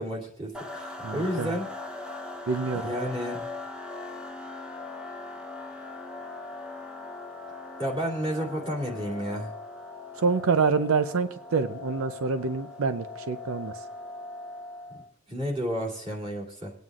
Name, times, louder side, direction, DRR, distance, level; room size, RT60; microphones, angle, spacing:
voice 1, 0.0-1.7 2.7-3.4 7.8-9.5 15.3-16.7, equal, 25° right, -2 dB, 2.6 m, -31 dB
sound 1, 0.5-15.1, left 3 dB, 5° right, 0.7 m, -40 dB
voice 2, 1.0-1.5 2.5-2.9 10.2-13.7, right 5 dB, 85° right, 10 dB, 0.6 m, -26 dB
23.5 x 9.3 x 2.4 m, 0.77 s
head